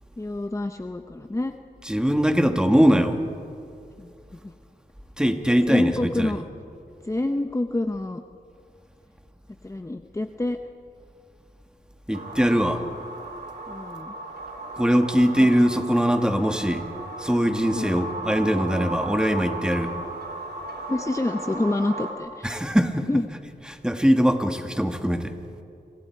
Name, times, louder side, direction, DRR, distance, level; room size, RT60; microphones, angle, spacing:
voice 1, 0.2-1.5 4.0-4.5 5.7-6.4 7.0-8.2 9.6-10.6 13.7-14.1 15.4-15.5 17.7-17.9 20.9-22.6 23.1-23.3, left 2 dB, 15° left, 7 dB, 0.8 m, -27 dB
voice 2, 1.9-3.2 5.2-6.4 12.1-12.9 14.8-16.8 17.2-20.0 22.4-23.1 23.7-25.4, equal, 5° right, 5 dB, 1.8 m, -21 dB
sound 1, 12.1-22.1, right 2 dB, 70° right, 4.4 m, -36 dB
30.0 x 26.5 x 4.7 m, 2.5 s
wide cardioid pair, 80°, 17 cm